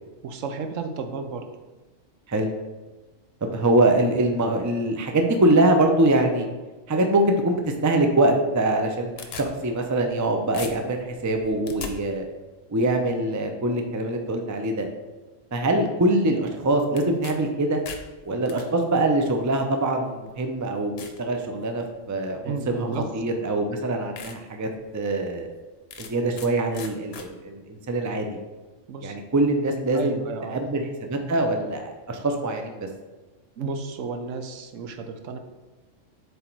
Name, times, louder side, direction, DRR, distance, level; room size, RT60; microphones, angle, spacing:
voice 1, 0.2-1.5 22.4-23.0 28.9-29.2 29.9-30.6 33.6-35.4, right 4 dB, 75° right, 7 dB, 1.1 m, -32 dB
voice 2, 3.4-6.5 6.9-12.3 12.7-14.9 15.5-17.8 18.3-25.5 26.0-28.4 29.0-30.1 30.5-32.9, right 1 dB, 25° right, 4 dB, 0.4 m, -23 dB
sound 1, 8.7-10.2 10.5-11.9 17.0-17.4 17.7-18.6 19.5-19.6 20.2-20.3 21.0-21.2 21.7-22.1 23.2-23.3 23.7-23.8 24.2-24.4 24.8-24.9 25.9-26.5 26.7-27.3, left 6 dB, 55° left, 0.9 m, -39 dB
8.0 x 3.6 x 4.5 m, 1.2 s
omnidirectional pair, 1.3 m